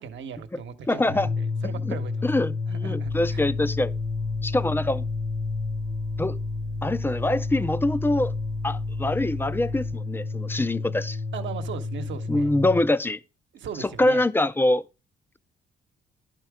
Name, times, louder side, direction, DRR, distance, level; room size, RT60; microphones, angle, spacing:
voice 1, 0.0-3.4 11.3-12.5 13.5-14.3, right 7 dB, 70° right, 1.0 m, -38 dB
voice 2, 0.9-1.3 1.9-2.0 2.2-3.9 4.4-5.0 6.2-6.4 6.8-8.3 8.6-11.2 12.3-13.2 14.0-14.8, left 2 dB, 10° left, 0.4 m, -24 dB
sound 1, 1.0-12.9, left 4 dB, 75° left, 1.7 m, -30 dB
sound 2, 3.0-10.0, right 7 dB, 40° right, 0.6 m, -43 dB
11.0 x 4.4 x 4.8 m
cardioid pair, 90°, 20 cm